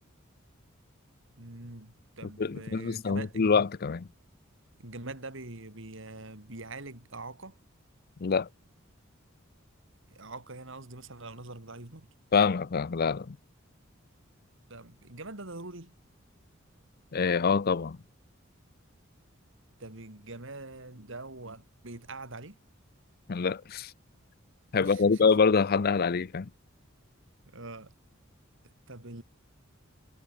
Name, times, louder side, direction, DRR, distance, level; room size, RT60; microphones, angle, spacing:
voice 1, 1.4-3.5 4.8-7.6 10.1-12.1 14.7-15.9 19.8-22.6 24.8-25.2 27.4-27.9 28.9-29.2, right 2 dB, 65° right, 3.6 m, -44 dB
voice 2, 2.4-4.1 8.2-8.5 12.3-13.4 17.1-18.0 23.3-23.9 24.7-26.5, left 5 dB, 50° left, 0.5 m, -25 dB
head